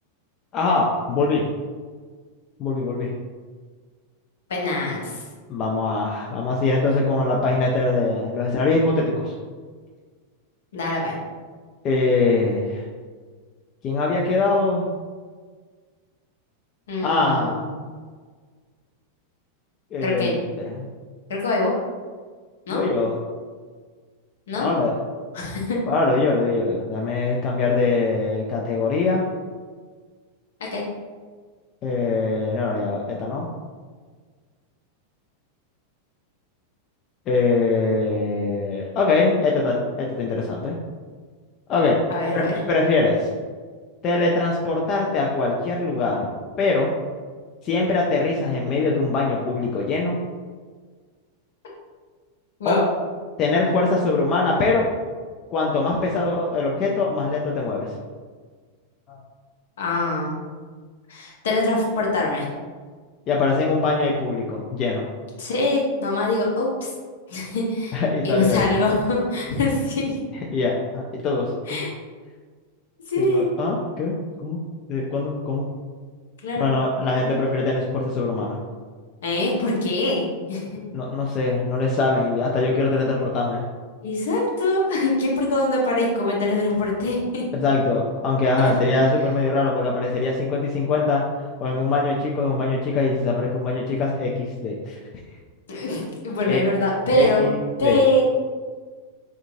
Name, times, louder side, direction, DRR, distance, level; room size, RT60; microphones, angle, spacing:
voice 1, 0.5-1.4 2.6-3.1 5.5-9.3 11.8-12.8 13.8-14.9 17.0-17.6 19.9-20.9 22.7-23.1 24.5-25.0 25.9-29.2 31.8-33.5 37.3-40.8 41.7-42.0 42.3-43.3 44.0-46.3 46.6-46.9 47.6-50.2 52.7-52.8 53.4-54.9 55.5-57.9 59.1-59.2 63.3-65.1 67.9-68.7 70.5-71.8 73.2-74.2 74.4-74.6 74.9-75.7 76.6-78.6 80.9-83.6 87.5-91.2 91.6-94.9 96.4-96.6 97.1-98.0, left 3 dB, 35° left, -2 dB, 0.5 m, -22 dB
voice 2, 4.5-5.2 10.7-11.2 16.9-17.7 20.0-20.3 21.3-21.7 22.7-22.8 24.5-24.7 25.3-25.8 30.6-30.8 42.1-42.5 52.6-52.8 59.8-60.4 61.1-62.5 65.4-66.9 67.3-70.2 71.7-71.9 73.1-73.5 76.4-76.7 79.2-80.8 84.0-87.4 88.6-88.7 95.7-97.5 97.8-98.2, left 2 dB, 60° left, -2 dB, 0.9 m, -23 dB
3.7 x 3.7 x 2.6 m, 1.5 s
figure-of-eight pair, 90°, 0 cm